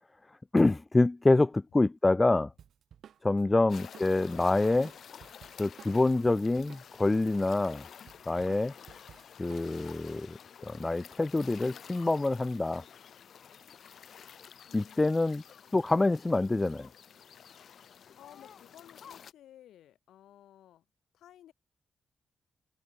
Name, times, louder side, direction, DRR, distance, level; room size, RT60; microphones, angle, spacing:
voice 1, 0.5-2.5 3.2-4.9 5.6-7.9 8.3-8.7 9.4-10.4 10.6-12.8 14.7-15.4 15.7-16.9, left 2 dB, 20° left, 0.4 m, -26 dB
Drum kit, 2.6-7.1 7.4-9.9, right 9 dB, 75° right, 6.1 m, -55 dB
sound 1, 3.7-19.3, left 8 dB, 70° left, 5.1 m, -51 dB
voice 2, 14.6-15.4 17.7-17.8 18.1-20.8 21.1-21.5, left 12 dB, 90° left, 6.4 m, -56 dB
cardioid pair, 70°, 0 cm